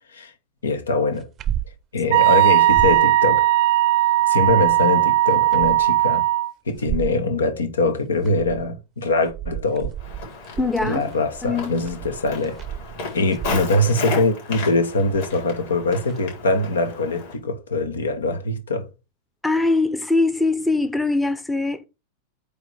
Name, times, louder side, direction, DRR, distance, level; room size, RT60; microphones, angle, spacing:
voice 1, 0.6-1.3 1.9-3.5 4.3-6.3 6.7-9.9 10.8-12.6 13.1-18.9, left 2 dB, 70° left, 1.3 m, -23 dB
sound 1, 1.2-1.8 2.1-2.2 2.5-3.1 4.2-4.8 5.3-6.0 6.7-7.2 8.0-8.7 9.1-13.8 15.1-15.4 16.1-16.2, right 10 dB, 30° right, 0.7 m, -33 dB
Wind instrument woodwind instrument, 2.1-6.5, right 14 dB, 50° right, 0.3 m, -17 dB
Walk footsteps, 10.0-17.4, left 3 dB, 50° left, 3.9 m, -33 dB
voice 2, 10.6-11.0 11.4-11.7 19.4-21.9, left 3 dB, 5° left, 0.8 m, -22 dB
8.7 x 3.3 x 4.8 m
figure-of-eight pair, 90°, 0 cm